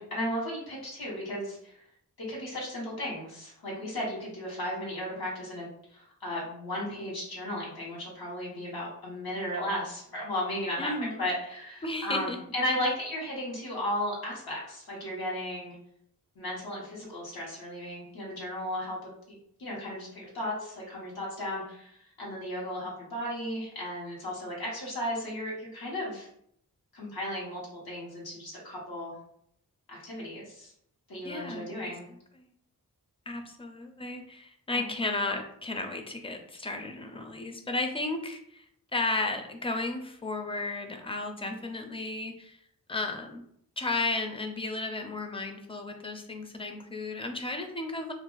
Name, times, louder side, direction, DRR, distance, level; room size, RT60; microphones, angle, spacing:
voice 1, 0.0-1.7 2.2-10.9 11.2-15.8 16.3-19.1 19.6-26.3 26.9-29.2 29.9-30.7 31.1-32.1 34.7-34.9 41.4-41.5, left 1 dB, 80° left, -5 dB, 1.2 m, -35 dB
voice 2, 10.8-11.3 11.8-12.4 31.2-31.7 32.4-32.5 33.3-38.6 38.9-42.6 42.9-43.4 43.8-48.1, left 2 dB, 15° left, 5 dB, 0.4 m, -34 dB
2.5 x 2.4 x 3.8 m, 0.70 s
wide cardioid pair, 95°, 36 cm